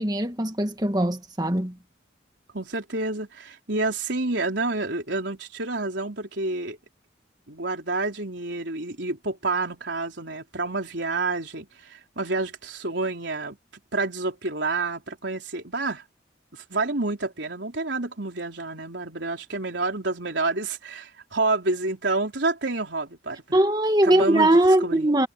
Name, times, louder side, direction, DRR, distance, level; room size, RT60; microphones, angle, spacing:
voice 1, 0.0-1.8 23.5-25.3, right 1 dB, 20° right, 1.9 m, -21 dB
voice 2, 2.5-6.8 7.5-13.6 13.9-16.0 16.5-23.4 24.0-24.5 24.8-25.1, right 3 dB, 65° right, 4.2 m, -28 dB
head